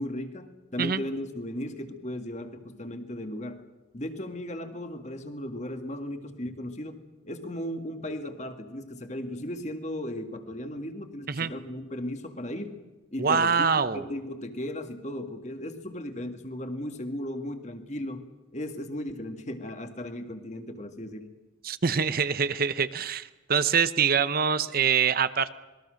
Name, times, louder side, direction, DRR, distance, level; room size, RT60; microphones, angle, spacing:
voice 1, 0.0-3.7 3.9-12.8 13.1-21.4, left 1 dB, 40° left, 6 dB, 2.0 m, -36 dB
voice 2, 13.2-14.0 21.6-25.5, right 6 dB, 50° right, 13 dB, 0.8 m, -25 dB
26.5 x 21.0 x 6.5 m, 1.2 s
head